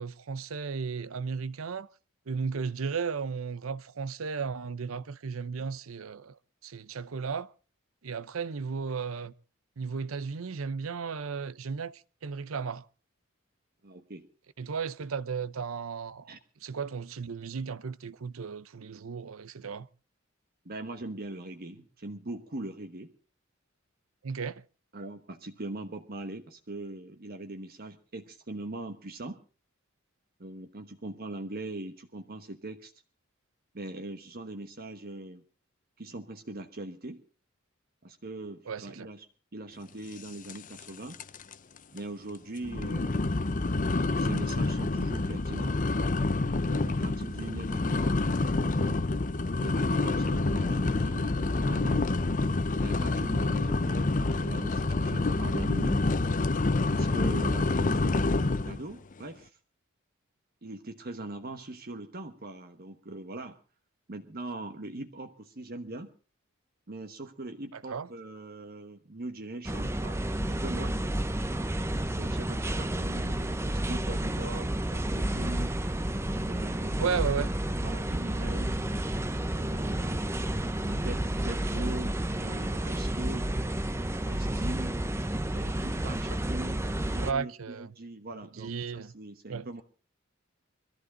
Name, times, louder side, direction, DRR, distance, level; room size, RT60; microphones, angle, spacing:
voice 1, 0.0-1.9 2.3-6.3 6.6-7.5 8.0-9.3 9.8-12.8 14.6-16.3 16.6-19.9 24.2-24.6 38.7-39.1 67.9-68.1 73.4-73.5 77.0-77.5 87.2-87.9 88.6-89.1 89.5-89.7, right 5 dB, 90° right, 0.7 m, -34 dB
voice 2, 13.8-14.3 16.3-16.4 20.6-23.1 24.9-29.4 30.4-32.9 33.7-35.4 36.0-37.2 38.0-41.2 41.9-43.3 44.1-45.8 46.6-48.2 48.5-49.0 49.6-52.0 52.8-56.0 56.9-59.5 60.6-63.6 64.1-66.1 66.9-71.0 72.1-75.8 76.5-77.0 77.8-78.8 79.5-80.2 80.8-83.5 84.2-85.0 85.5-86.8 87.1-89.8, right 2 dB, 45° right, 1.2 m, -41 dB
sound 1, 40.5-40.9 41.1-41.5 42.0-42.1 42.6-58.8, left 2 dB, 40° left, 0.7 m, -27 dB
sound 2, 69.7-87.3, right 1 dB, 15° right, 0.8 m, -31 dB
22.0 x 14.0 x 3.8 m
head